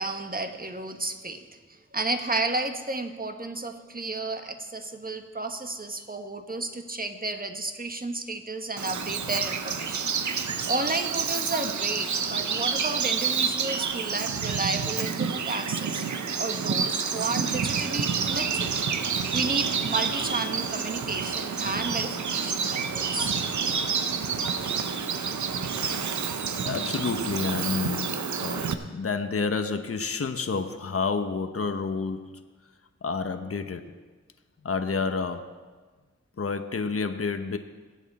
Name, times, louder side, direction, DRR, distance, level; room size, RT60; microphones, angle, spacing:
voice 1, 0.0-1.4 1.9-10.1 10.7-16.0 16.4-18.7 19.3-23.3, right 3 dB, 30° right, 6 dB, 1.5 m, -32 dB
Bird vocalization bird call bird song, 8.8-28.7, right 6 dB, 75° right, 0.8 m, -29 dB
voice 2, 26.6-32.4 33.0-33.9 34.6-35.5 36.4-37.6, left 4 dB, 50° left, 7 dB, 1.1 m, -29 dB
22.0 x 8.2 x 4.3 m, 1.3 s
cardioid pair, 40°, 29 cm